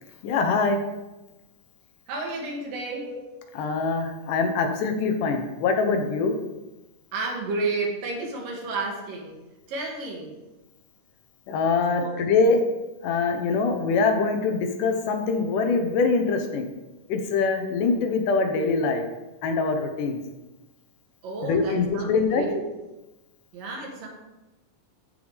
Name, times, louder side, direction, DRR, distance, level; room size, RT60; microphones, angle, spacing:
voice 1, 0.2-0.8 3.1-3.2 3.5-6.3 11.5-12.6 13.0-16.7 17.1-19.1 19.4-20.2 21.4-22.4, left 4 dB, 75° left, 5 dB, 2.5 m, -23 dB
voice 2, 2.1-3.1 7.1-9.4 9.7-10.3 12.0-12.1 21.2-22.6 23.5-24.1, right 3 dB, 80° right, 0 dB, 3.5 m, -31 dB
15.0 x 5.5 x 3.5 m, 1.0 s
omnidirectional pair, 3.8 m